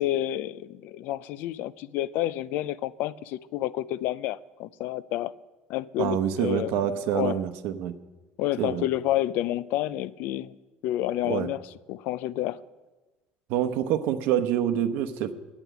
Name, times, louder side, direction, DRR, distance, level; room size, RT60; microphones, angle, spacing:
voice 1, 0.0-5.3 5.7-6.7 7.1-7.4 8.4-10.5 10.8-11.6 11.9-12.6, left 14 dB, 60° left, 0.4 m, -29 dB
voice 2, 6.0-8.0 8.6-8.8 11.3-11.5 13.5-15.5, right 10 dB, 65° right, 0.8 m, -26 dB
11.0 x 8.8 x 8.0 m
cardioid pair, 170°, 4 cm